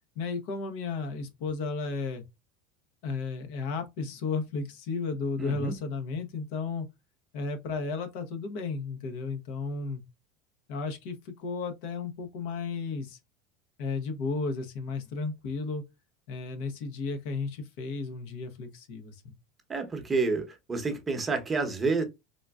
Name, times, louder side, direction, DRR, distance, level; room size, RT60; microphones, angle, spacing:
voice 1, 0.2-2.2 3.0-6.9 7.3-10.0 10.7-13.2 13.8-15.8 16.3-19.3, left 4 dB, 70° left, 0.8 m, -33 dB
voice 2, 5.4-5.8 19.7-22.0, right 4 dB, 20° right, 0.8 m, -29 dB
3.7 x 2.4 x 2.3 m
supercardioid pair, 125°, 0 cm